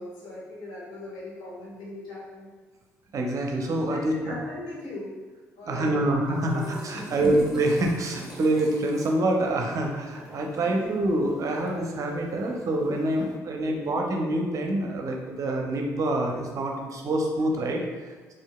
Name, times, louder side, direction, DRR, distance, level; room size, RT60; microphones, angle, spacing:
voice 1, 0.0-2.5 3.9-5.1 5.6-6.1 6.5-7.4 10.5-11.0, left 1 dB, 55° left, -8 dB, 1.1 m, -39 dB
voice 2, 3.1-4.4 5.7-18.3, right 1 dB, 40° right, 2 dB, 0.6 m, -26 dB
sound 1, 6.2-13.3, right 1 dB, 5° right, 0.9 m, -47 dB
4.4 x 2.5 x 2.2 m, 1.4 s
figure-of-eight pair, 45°, 8 cm